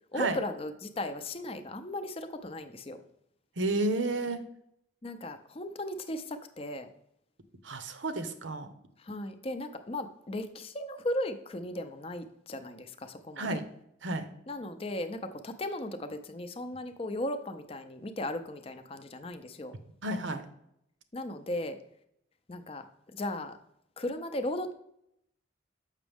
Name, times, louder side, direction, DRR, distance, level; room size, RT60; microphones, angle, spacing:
voice 1, 0.1-3.0 5.0-6.9 9.0-13.6 14.5-19.7 21.1-21.8 22.5-23.6 24.0-24.7, left 1 dB, 30° left, 9 dB, 0.5 m, -36 dB
voice 2, 3.6-4.4 7.6-8.7 13.4-13.6 14.0-14.3 20.0-20.4, right 2 dB, 90° right, 9 dB, 0.8 m, -31 dB
7.4 x 6.1 x 3.5 m, 0.75 s
head